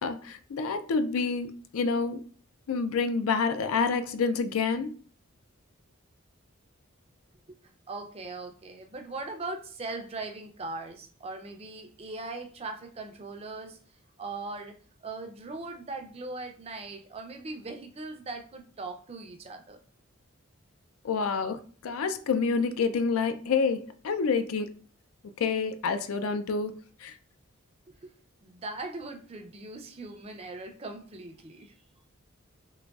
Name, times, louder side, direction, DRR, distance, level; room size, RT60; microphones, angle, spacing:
voice 1, 0.0-2.2 2.7-5.0 21.0-24.7 25.4-27.1, left 5 dB, 80° left, 0.4 m, -28 dB
voice 2, 7.5-13.8 14.2-19.8 27.9-28.2 28.4-31.7, right 3 dB, 30° right, 0.4 m, -40 dB
3.8 x 2.9 x 2.3 m
head